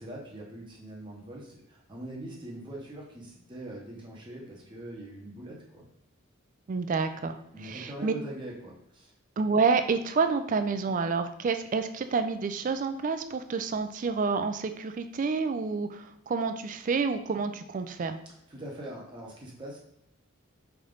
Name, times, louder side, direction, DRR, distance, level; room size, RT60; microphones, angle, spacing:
voice 1, 0.0-5.9 7.5-9.1 18.5-19.8, right 1 dB, 20° right, -3 dB, 0.8 m, -42 dB
voice 2, 6.7-7.4 7.6-8.1 9.4-18.2, right 4 dB, 40° right, 9 dB, 0.3 m, -28 dB
4.0 x 3.4 x 3.8 m, 0.80 s
head